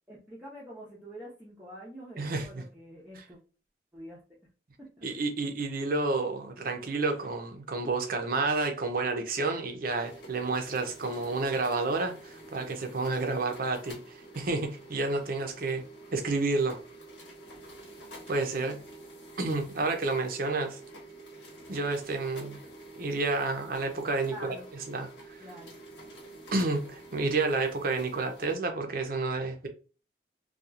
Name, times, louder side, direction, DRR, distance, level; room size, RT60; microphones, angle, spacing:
voice 1, 0.1-3.4 3.9-4.4 4.8-5.1 24.2-24.7 25.4-25.7, equal, 10° right, 0.6 m, -46 dB
voice 2, 2.2-2.6 5.0-15.8 16.1-16.8 18.3-18.8 19.4-20.8 21.7-22.6 23.0-24.6 24.9-25.4 26.5-29.7, right 3 dB, 55° right, 0.6 m, -30 dB
sound 1, 9.9-28.6, right 2 dB, 85° left, 1.1 m, -48 dB
2.9 x 2.3 x 2.4 m
head